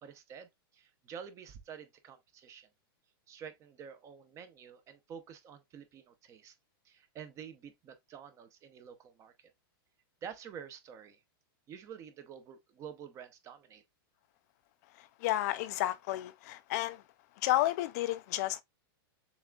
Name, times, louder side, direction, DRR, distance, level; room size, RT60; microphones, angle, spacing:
voice 1, 0.0-2.7 3.3-6.6 6.8-9.5 10.2-11.2 11.7-13.8, right 7 dB, 25° right, 0.6 m, -49 dB
voice 2, 15.2-17.0 17.4-18.6, left 15 dB, 45° left, 0.4 m, -31 dB
7.0 x 2.4 x 2.3 m
supercardioid pair, 145°, 12 cm